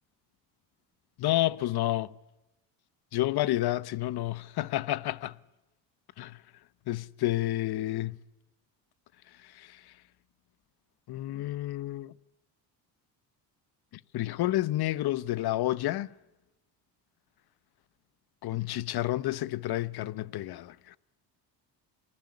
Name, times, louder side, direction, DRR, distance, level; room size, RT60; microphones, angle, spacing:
voice 1, 1.2-2.1 3.1-5.4 6.2-6.4 6.9-8.2 9.4-9.9 11.1-12.1 14.1-16.1 18.4-21.0, left 15 dB, 60° left, 1.1 m, -30 dB
27.5 x 20.0 x 9.7 m
cardioid pair, 100°, 44 cm